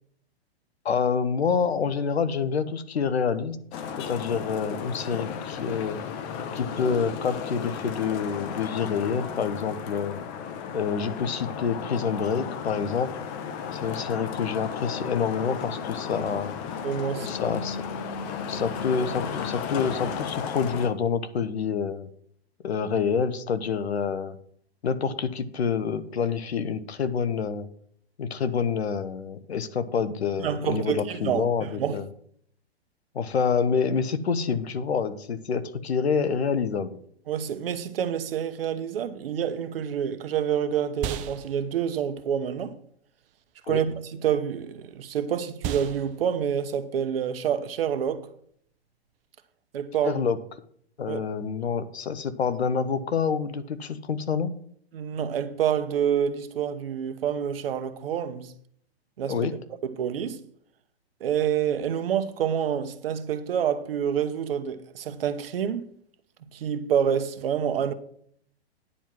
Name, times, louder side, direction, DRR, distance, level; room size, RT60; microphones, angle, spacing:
voice 1, 0.8-3.6 4.1-6.0 6.5-10.2 10.7-13.2 13.7-16.5 17.2-18.0 18.5-22.1 22.6-24.4 24.8-27.7 28.2-32.0 33.1-37.0 43.7-43.8 50.0-50.4 51.0-54.5 59.3-59.5, left 6 dB, 75° left, 1.1 m, -27 dB
Traffic noise roadway noise, 3.7-20.9, left 7 dB, 30° left, 0.9 m, -34 dB
voice 2, 16.8-17.3 30.4-32.0 37.3-42.7 43.7-48.3 49.7-50.2 51.0-51.2 54.9-58.5 59.2-59.4 59.8-60.4 61.2-65.9 66.4-67.9, right 8 dB, 60° right, 1.1 m, -27 dB
sound 1, 39.6-49.3, right 8 dB, 25° right, 0.6 m, -40 dB
10.0 x 4.6 x 7.5 m
hypercardioid pair, 130°, 32 cm